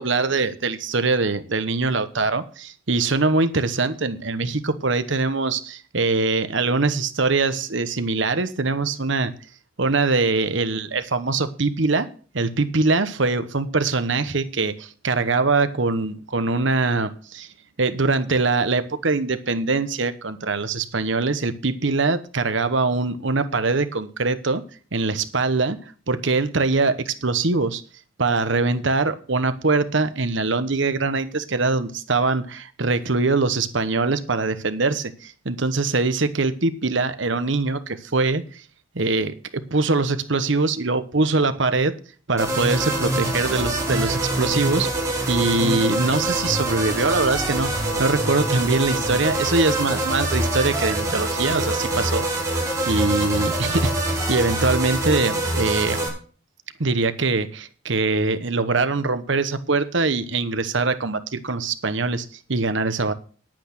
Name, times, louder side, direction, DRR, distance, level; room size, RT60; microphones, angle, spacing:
voice 1, 0.0-9.3 9.8-12.1 12.3-17.5 17.8-24.6 24.9-27.8 28.2-38.6 38.9-41.9 42.3-44.9 45.3-52.3 52.9-56.0 56.8-63.1, right 3 dB, 65° right, 11 dB, 1.0 m, -23 dB
sound 1, 42.4-56.1, right 1 dB, 15° right, 4.9 m, -25 dB
10.5 x 9.0 x 6.0 m, 0.41 s
head